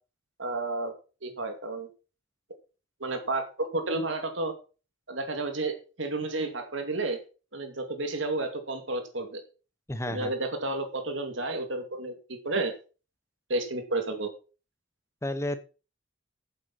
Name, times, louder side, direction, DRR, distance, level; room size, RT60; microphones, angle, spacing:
voice 1, 0.4-0.9 1.2-1.9 3.0-4.5 5.1-7.2 7.5-9.4 10.1-12.7 13.5-14.3, right 2 dB, 75° right, 6 dB, 2.5 m, -31 dB
voice 2, 9.9-10.3 15.2-15.6, left 1 dB, 15° left, 11 dB, 0.9 m, -31 dB
8.5 x 7.5 x 5.6 m, 0.35 s
head